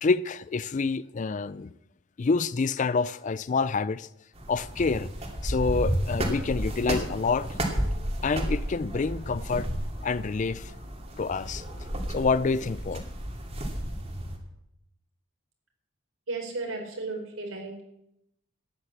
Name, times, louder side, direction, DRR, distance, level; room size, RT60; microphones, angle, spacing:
voice 1, 0.0-1.7 2.2-4.1 4.5-5.1 5.4-7.6 8.2-9.7 10.0-10.7 11.2-11.6 12.1-13.0, left 4 dB, 35° left, 0.4 m, -27 dB
sound 1, 4.3-14.4, equal, 30° right, 2.5 m, -32 dB
voice 2, 16.3-17.8, right 3 dB, 85° right, 4.1 m, -34 dB
13.0 x 9.9 x 7.3 m
head